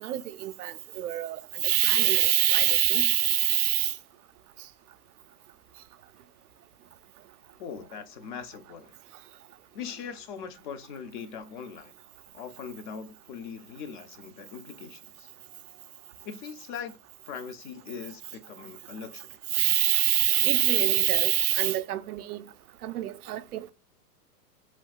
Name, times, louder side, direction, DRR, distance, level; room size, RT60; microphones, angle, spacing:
voice 1, 0.0-1.4 1.6-3.9 19.5-22.4 22.8-23.7, right 14 dB, 75° right, 0.5 m, -24 dB
voice 2, 7.6-8.9 9.7-11.9 12.3-15.3 16.2-17.0 17.3-19.4, left 7 dB, 35° left, 0.4 m, -41 dB
3.4 x 2.7 x 2.3 m
hypercardioid pair, 110°, 46 cm